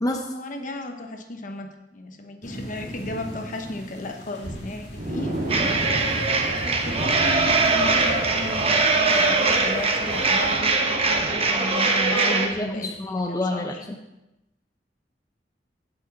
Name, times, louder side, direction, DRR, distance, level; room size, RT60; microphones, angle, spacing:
voice 1, 0.3-5.3 5.6-6.0 6.6-13.1 13.5-13.7, left 1 dB, 50° left, 5 dB, 1.0 m, -34 dB
sound 1, 2.4-10.5, equal, 70° left, 2.9 m, -42 dB
sound 2, 4.4-12.2 12.5-12.6 13.1-13.2, right 1 dB, 50° right, 1.7 m, -34 dB
sound 3, 5.5-12.5, right 3 dB, 35° right, 1.0 m, -22 dB
voice 2, 12.1-14.0, left 1 dB, 20° left, 2 dB, 0.6 m, -28 dB
9.1 x 8.0 x 4.2 m, 0.94 s
head